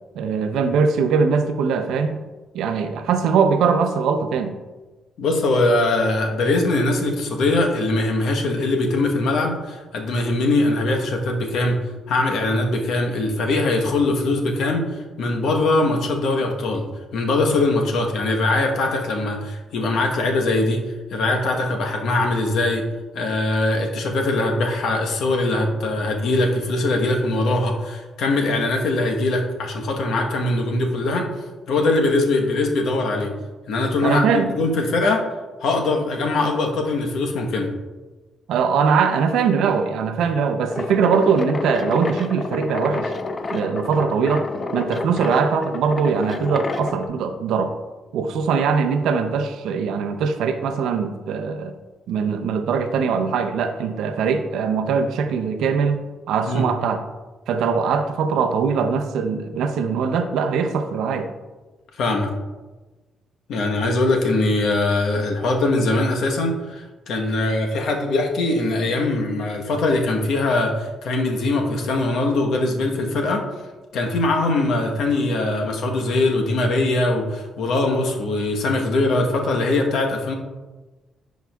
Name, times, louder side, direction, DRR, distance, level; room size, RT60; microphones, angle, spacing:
voice 1, 0.2-2.2 2.5-4.5 34.0-34.5 38.5-43.1 43.5-44.5 44.7-47.7 48.1-51.8 52.1-56.0 56.3-57.0 57.5-61.3, right 5 dB, 80° right, 7 dB, 0.5 m, -21 dB
voice 2, 5.2-11.8 12.1-14.8 15.2-16.8 17.1-20.8 21.1-22.8 23.1-31.3 31.7-33.3 33.7-35.2 35.6-37.7 43.5-43.6 56.5-56.6 62.0-62.3 63.5-73.4 73.9-80.3, left 2 dB, 75° left, 2 dB, 1.0 m, -21 dB
sound 1, 40.7-47.1, left 3 dB, 35° left, 0.5 m, -29 dB
10.5 x 4.7 x 2.3 m, 1.2 s
cardioid pair, 90°, 0 cm